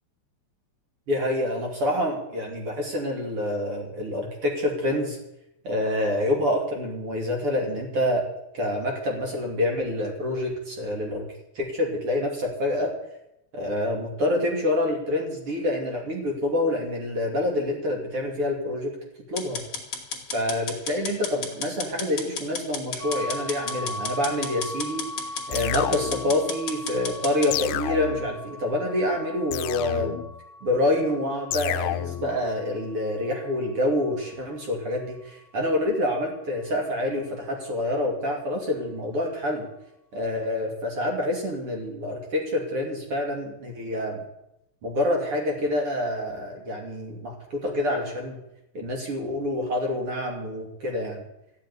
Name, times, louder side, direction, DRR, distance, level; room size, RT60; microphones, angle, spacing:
voice 1, 1.1-5.2 5.6-8.2 8.5-11.3 11.5-12.9 13.5-19.0 19.3-19.6 20.3-25.0 25.5-30.2 30.6-39.7 40.1-44.2 44.8-48.4 48.7-51.2, left 1 dB, 35° right, 1 dB, 2.7 m, -27 dB
sound 1, 19.4-27.5, left 5 dB, 40° left, 2.5 m, -33 dB
sound 2, 23.0-34.7, left 1 dB, 15° left, 3.2 m, -40 dB
sound 3, 25.5-26.4 27.5-28.4 29.5-30.4 31.5-32.4, left 14 dB, 80° left, 2.9 m, -30 dB
15.0 x 7.9 x 9.6 m, 0.83 s
omnidirectional pair, 5.5 m